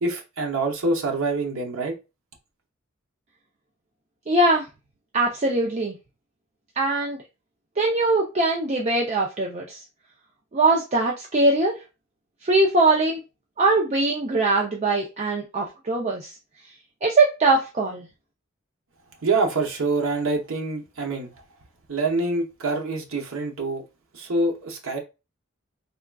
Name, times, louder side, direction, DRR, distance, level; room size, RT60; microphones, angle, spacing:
voice 1, 0.0-1.9 19.2-21.3 21.9-23.8 24.1-25.0, right 3 dB, 80° right, 0.8 m, -25 dB
voice 2, 4.3-4.7 5.1-6.0 6.8-7.2 7.8-9.8 10.5-11.8 12.4-13.2 13.6-16.3 17.0-18.1, right 2 dB, 35° right, 0.4 m, -21 dB
3.6 x 2.3 x 2.2 m
head